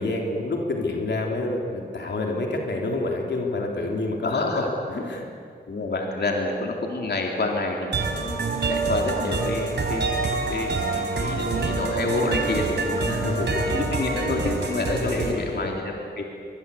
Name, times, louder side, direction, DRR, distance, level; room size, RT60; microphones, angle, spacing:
voice 1, 0.0-4.6 4.9-5.3 13.0-13.8 14.8-15.7, left 2 dB, 85° left, 1 dB, 3.4 m, -28 dB
voice 2, 4.2-4.7 5.7-8.4 8.7-10.1 10.5-13.2 13.7-16.2, left 2 dB, 70° left, 1 dB, 3.2 m, -28 dB
sound 1, 7.9-15.3, right 3 dB, 80° right, 3.7 m, -26 dB
24.0 x 21.5 x 8.4 m, 2.3 s
cardioid pair, 65°, 18 cm